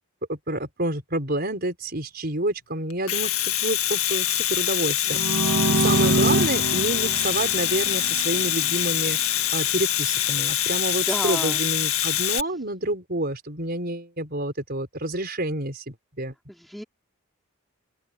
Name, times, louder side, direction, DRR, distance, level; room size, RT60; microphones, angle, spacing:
voice 1, 0.3-16.3, right 1 dB, 45° right, 5.2 m, -29 dB
Domestic sounds home sounds, 2.9-12.4, left 12 dB, 80° left, 1.9 m, -24 dB
sound 1, 5.1-8.8, right 2 dB, 70° right, 2.6 m, -25 dB
voice 2, 10.8-11.6 16.5-16.8, equal, ahead, 3.9 m, -32 dB
open air
head